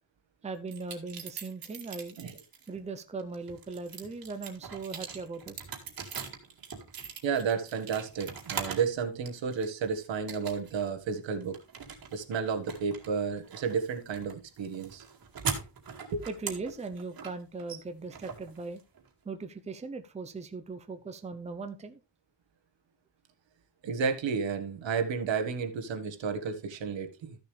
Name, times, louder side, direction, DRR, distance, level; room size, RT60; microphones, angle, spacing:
voice 1, 0.4-2.2 2.7-5.6 16.3-18.8 19.2-22.0, right 4 dB, 15° right, 0.7 m, -39 dB
sound 1, 0.7-2.7 3.2-8.9 9.3-9.9 10.3-10.9 11.2-19.1, right 6 dB, 50° right, 2.1 m, -41 dB
voice 2, 7.2-11.6 12.1-15.0 16.1-16.2 23.8-27.4, right 6 dB, 75° right, 1.6 m, -32 dB
13.5 x 6.8 x 3.3 m
wide cardioid pair, 175°, 45 cm